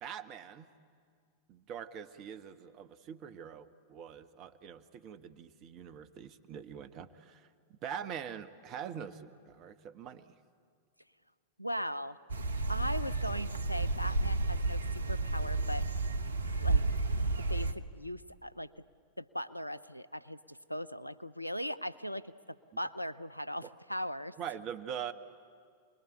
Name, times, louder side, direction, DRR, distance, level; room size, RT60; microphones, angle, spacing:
voice 1, 0.0-0.7 1.5-10.4 23.6-23.7 24.4-25.1, right 8 dB, 35° right, 11 dB, 1.3 m, -43 dB
voice 2, 11.6-12.2 12.7-14.8 15.1-15.8 16.6-16.8 17.2-18.7 19.2-22.3 22.8-24.3, equal, 90° left, 14 dB, 0.7 m, -39 dB
sound 1, 12.3-17.7, right 3 dB, 75° right, 1.0 m, -31 dB
28.0 x 21.0 x 9.9 m, 2.1 s
figure-of-eight pair, 90°, 0 cm